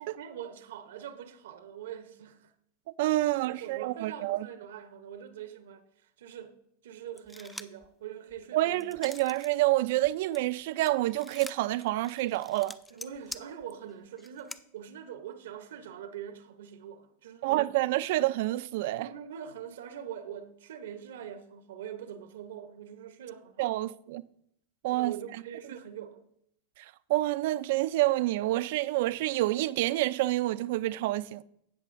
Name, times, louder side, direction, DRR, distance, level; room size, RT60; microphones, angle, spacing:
voice 1, 0.0-2.5 3.1-6.6 6.8-8.9 12.9-17.7 19.0-23.7 24.9-26.2, right 9 dB, 80° right, 0.8 m, -43 dB
voice 2, 3.0-4.5 8.5-12.8 17.4-19.1 23.6-24.2 24.8-25.2 26.8-31.4, right 17 dB, 65° right, 0.4 m, -28 dB
sound 1, 7.2-7.9 8.3-9.5 9.9-14.6, left 1 dB, 5° left, 0.4 m, -46 dB
16.5 x 6.5 x 2.6 m
supercardioid pair, 130°, 0 cm